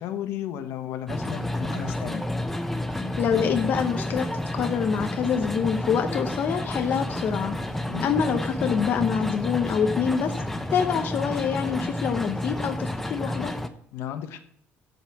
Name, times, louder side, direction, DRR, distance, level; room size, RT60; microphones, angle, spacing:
voice 1, 0.0-2.3 7.9-8.2 13.9-14.4, left 10 dB, 70° left, 8 dB, 1.2 m, -34 dB
sound 1, 1.1-13.7, left 1 dB, 5° left, 0.7 m, -30 dB
voice 2, 3.2-4.3 4.5-7.6 8.0-10.4 10.7-13.5, left 7 dB, 45° left, 5 dB, 0.9 m, -25 dB
12.0 x 5.6 x 7.2 m, 0.64 s
cardioid pair, 160°, 5 cm